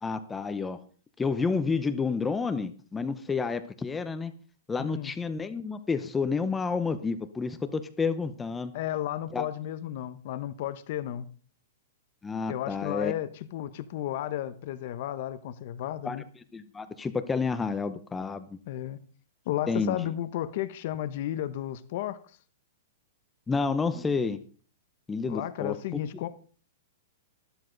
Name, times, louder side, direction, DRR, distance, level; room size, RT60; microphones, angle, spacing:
voice 1, 0.0-0.8 1.2-4.3 4.7-8.7 9.3-9.4 12.2-13.1 16.0-16.2 16.5-18.5 19.7-20.0 23.5-24.4 25.1-25.7, left 4 dB, 10° left, 0.7 m, -30 dB
voice 2, 4.8-5.1 8.7-11.3 12.5-16.2 18.7-19.0 19.5-22.2 25.3-26.3, left 12 dB, 45° left, 1.0 m, -33 dB
13.0 x 12.5 x 4.0 m
hypercardioid pair, 165°, 0 cm